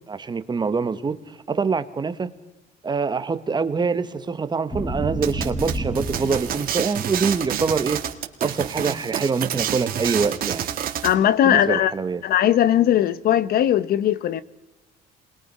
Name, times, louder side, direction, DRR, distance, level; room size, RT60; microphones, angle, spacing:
voice 1, 0.1-2.3 2.8-8.0 8.4-10.7 11.4-12.2, right 5 dB, 25° right, 1.2 m, -25 dB
sound 1, 4.7-6.7 7.1-7.6, right 1 dB, 10° left, 3.9 m, -29 dB
sound 2, 5.2-11.1, right 10 dB, 60° right, 1.9 m, -28 dB
voice 2, 11.0-11.9 12.2-14.4, left 11 dB, 65° left, 0.9 m, -19 dB
27.0 x 21.0 x 5.5 m
cardioid pair, 110°, 17 cm